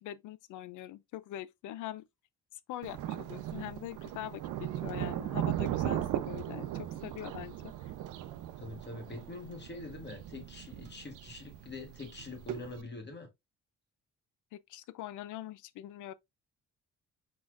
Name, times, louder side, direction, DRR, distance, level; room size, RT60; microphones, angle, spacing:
voice 1, 0.0-2.1 2.7-7.7 14.5-16.1, left 13 dB, 80° left, 0.5 m, -43 dB
Thunder, 2.8-12.8, right 12 dB, 90° right, 0.6 m, -38 dB
voice 2, 8.6-13.3, left 3 dB, 35° left, 1.7 m, -44 dB
4.4 x 4.1 x 2.4 m
cardioid pair, 90°, 30 cm